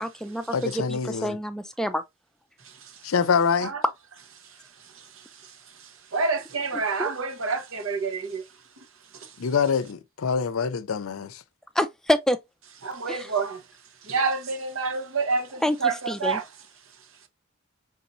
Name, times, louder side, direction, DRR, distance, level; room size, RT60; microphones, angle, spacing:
voice 1, 0.0-2.0 7.0-7.2 11.7-12.4 13.1-13.3 15.6-16.4, equal, ahead, 0.4 m, -27 dB
voice 2, 0.5-1.4 3.0-3.7 9.4-11.4, left 6 dB, 75° left, 0.5 m, -25 dB
voice 3, 2.6-3.0 3.6-3.8 4.9-8.4 9.1-9.3 12.8-13.6 14.0-16.4, right 4 dB, 70° right, 0.9 m, -29 dB
4.2 x 3.7 x 2.6 m
head